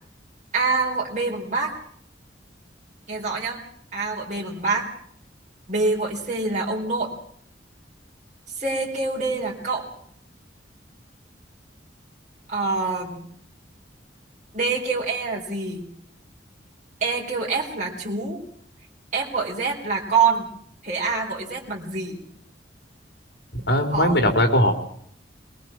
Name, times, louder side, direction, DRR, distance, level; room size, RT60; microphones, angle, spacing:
voice 1, 0.5-1.7 3.1-3.6 3.9-4.9 5.7-7.1 8.6-9.9 12.5-13.3 14.5-15.9 17.0-18.4 19.1-20.5 20.8-22.2 23.9-24.2, right 4 dB, 40° right, -3 dB, 4.2 m, -25 dB
voice 2, 23.5-24.7, left 1 dB, 70° left, 4 dB, 3.9 m, -19 dB
22.5 x 21.5 x 6.1 m, 0.64 s
head